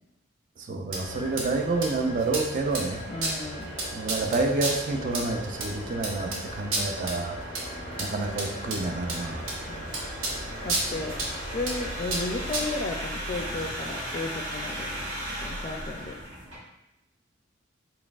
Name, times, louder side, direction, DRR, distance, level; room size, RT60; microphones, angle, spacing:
voice 1, 0.6-3.0 3.9-9.5, right 3 dB, 40° right, 4 dB, 0.4 m, -29 dB
sound 1, 0.9-12.8, right 2 dB, 85° right, 0.8 m, -34 dB
sound 2, 1.0-16.6, equal, 65° right, 1.4 m, -38 dB
voice 2, 3.1-3.7 9.7-9.9 10.6-11.2 11.5-14.9 15.4-16.2, left 2 dB, 35° left, 1 dB, 0.3 m, -34 dB
4.2 x 3.3 x 2.4 m, 0.88 s
head